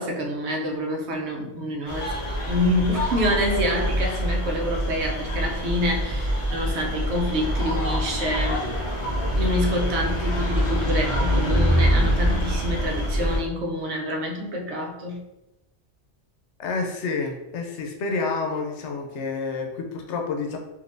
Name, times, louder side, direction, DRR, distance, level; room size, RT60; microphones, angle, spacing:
voice 1, 0.0-2.1 2.5-8.7 9.3-15.2, equal, 70° right, 0 dB, 0.9 m, -27 dB
sound 1, 1.9-13.4, equal, 40° left, 0.5 m, -25 dB
voice 2, 16.6-20.6, left 4 dB, 75° left, 2 dB, 0.9 m, -29 dB
3.8 x 2.6 x 2.5 m, 0.99 s
omnidirectional pair, 1.2 m